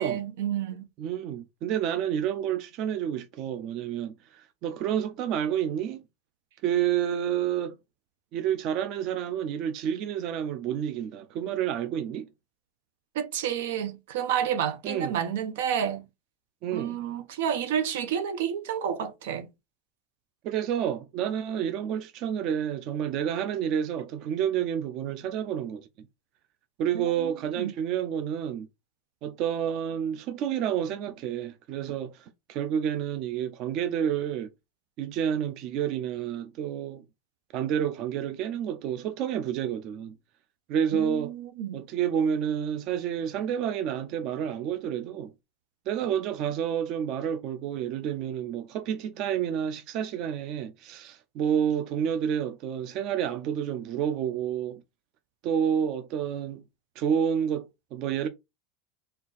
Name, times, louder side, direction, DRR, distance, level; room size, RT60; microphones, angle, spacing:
voice 1, 0.0-0.9 13.1-16.0 16.7-19.5 26.9-27.3 27.6-27.7 40.9-41.8, right 9 dB, 80° right, 0.8 m, -30 dB
voice 2, 1.0-6.0 6.6-7.7 8.3-12.3 14.8-15.2 16.6-17.0 20.4-25.9 26.8-28.7 29.2-34.5 35.0-37.0 37.5-40.1 40.7-41.3 41.7-45.3 45.9-54.8 55.4-56.6 57.0-58.3, right 9 dB, 40° right, 0.5 m, -29 dB
4.4 x 2.5 x 3.9 m
supercardioid pair, 165°, 0 cm